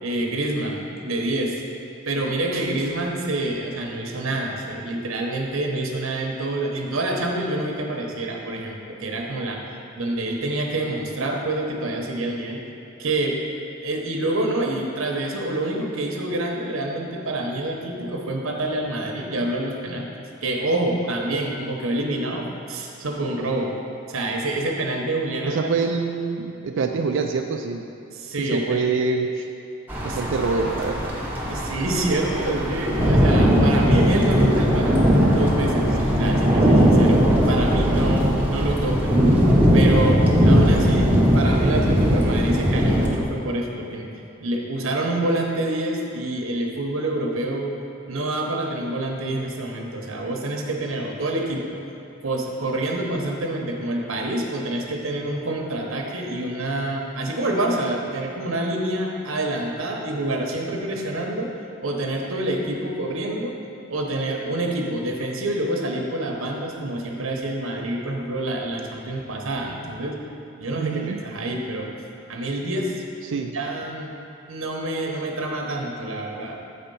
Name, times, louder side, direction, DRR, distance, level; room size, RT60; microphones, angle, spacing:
voice 1, 0.0-1.6 2.1-9.6 10.0-12.6 13.0-13.4 13.8-20.1 20.4-23.7 24.1-25.8 28.1-28.8 30.1-30.2 31.5-35.9 36.2-39.2 39.7-44.1 44.4-47.7 48.1-51.8 52.2-61.5 61.8-63.5 63.9-70.2 70.6-71.9 72.3-73.0 73.5-74.1 74.5-76.6, right 1 dB, 85° right, 1 dB, 0.9 m, -27 dB
voice 2, 25.4-27.8 28.5-29.5 30.0-31.1 70.7-71.2 73.2-73.5, right 4 dB, 65° right, 2 dB, 0.4 m, -25 dB
sound 1, 29.9-43.1, equal, 10° right, 1.0 m, -19 dB
7.8 x 4.3 x 5.4 m, 2.6 s
head